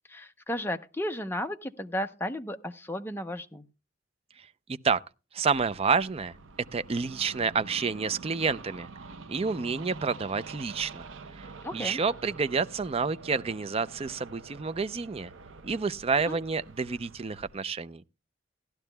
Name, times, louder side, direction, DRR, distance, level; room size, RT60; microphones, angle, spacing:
voice 1, 0.1-3.6 11.6-12.0 16.3-16.4, left 1 dB, 10° left, 0.7 m, -34 dB
voice 2, 4.7-5.0 5.3-6.3 6.7-8.9 9.3-11.1 11.3-15.3 15.6-18.0, right 5 dB, 30° right, 0.4 m, -29 dB
sound 1, 5.5-17.6, right 4 dB, 85° right, 0.7 m, -47 dB
16.0 x 12.0 x 2.2 m
head